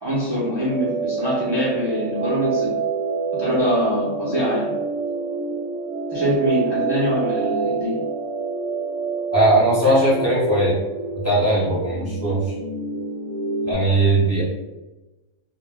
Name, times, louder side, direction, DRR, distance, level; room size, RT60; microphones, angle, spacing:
voice 1, 0.0-2.7 3.4-4.7 6.1-8.0, equal, 40° right, -9 dB, 0.3 m, -23 dB
sound 1, 0.7-13.7, right 4 dB, 65° right, 0.8 m, -27 dB
voice 2, 9.3-10.7 11.2-12.5 13.6-14.4, right 1 dB, 15° left, -8 dB, 0.7 m, -19 dB
2.2 x 2.1 x 3.3 m, 1.1 s
omnidirectional pair, 1.4 m